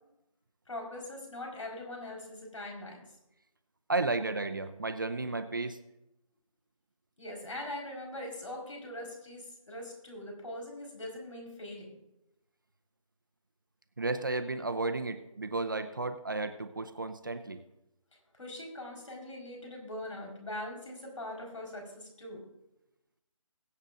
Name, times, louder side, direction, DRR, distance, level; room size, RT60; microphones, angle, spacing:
voice 1, 0.7-3.0 7.2-11.9 18.4-22.4, left 1 dB, 60° left, 1 dB, 4.4 m, -42 dB
voice 2, 3.9-5.8 14.0-17.6, right 3 dB, 35° right, 8 dB, 0.6 m, -33 dB
22.0 x 7.9 x 2.5 m, 0.90 s
figure-of-eight pair, 175°, 18 cm